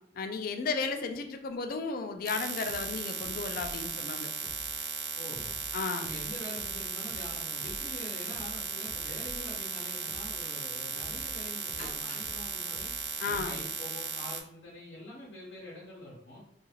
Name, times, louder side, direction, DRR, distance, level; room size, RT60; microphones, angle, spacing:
voice 1, 0.2-4.3 5.7-6.1 13.2-13.6, left 4 dB, 55° left, 6 dB, 0.3 m, -34 dB
sound 1, 2.2-14.4, right 7 dB, 80° right, 0.4 m, -36 dB
sound 2, 2.7-13.8, equal, 20° right, 0.6 m, -50 dB
voice 2, 5.1-5.5 6.0-12.9 13.2-16.4, left 1 dB, 80° left, -5 dB, 0.7 m, -45 dB
Chirp tweet, 7.6-12.7, left 1 dB, 35° left, 0.8 m, -54 dB
2.4 x 2.3 x 3.1 m, 0.69 s
head